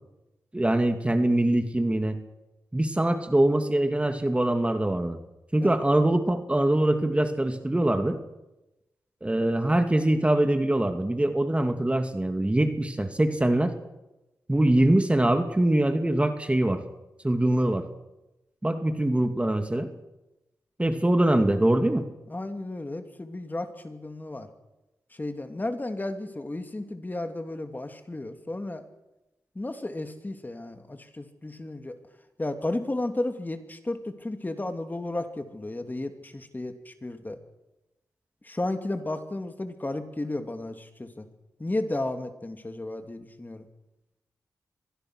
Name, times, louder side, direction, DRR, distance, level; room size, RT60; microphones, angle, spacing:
voice 1, 0.5-2.2 2.7-5.2 5.5-8.2 9.2-13.7 14.5-16.8 17.2-17.8 18.6-19.9 20.8-22.1, right 1 dB, 15° right, 7 dB, 2.4 m, -23 dB
voice 2, 22.3-24.5 25.1-28.8 29.5-32.0 32.4-37.4 38.4-41.3 41.6-43.7, left 2 dB, 25° left, 7 dB, 2.8 m, -33 dB
24.5 x 20.0 x 6.4 m, 0.97 s
cardioid pair, 55°, 7 cm